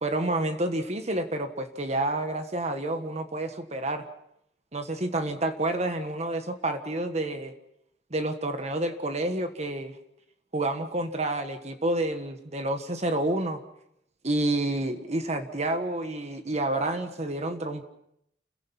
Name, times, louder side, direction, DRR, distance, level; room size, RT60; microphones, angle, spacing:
voice 1, 0.0-4.1 4.7-7.5 8.1-9.9 10.5-13.6 14.2-17.9, right 2 dB, 40° right, 7 dB, 1.5 m, -29 dB
29.5 x 16.0 x 6.0 m, 0.77 s
head